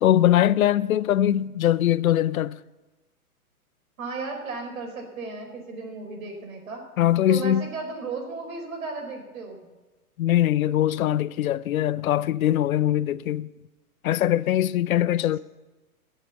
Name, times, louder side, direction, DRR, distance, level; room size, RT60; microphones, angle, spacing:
voice 1, 0.0-2.6 7.0-7.7 10.2-13.5 14.0-15.4, left 12 dB, 65° left, 0.6 m, -22 dB
voice 2, 4.0-6.8 7.3-9.7 15.1-15.2, right 4 dB, 65° right, 4.8 m, -35 dB
19.5 x 7.4 x 6.9 m
hypercardioid pair, 125°, 45 cm